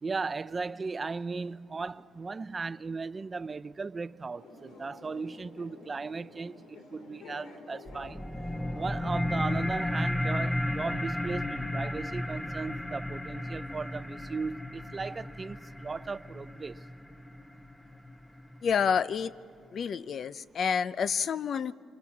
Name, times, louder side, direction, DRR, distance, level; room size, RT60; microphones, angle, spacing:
voice 1, 0.0-8.2 8.7-16.8, right 4 dB, 30° right, 0.5 m, -37 dB
sound 1, 4.4-10.0, left 3 dB, 85° left, 3.2 m, -51 dB
sound 2, 7.9-18.9, left 1 dB, 10° left, 1.0 m, -34 dB
voice 2, 18.6-19.3 19.7-21.7, left 7 dB, 55° left, 0.6 m, -28 dB
26.5 x 26.0 x 7.3 m
cardioid pair, 90°, 0 cm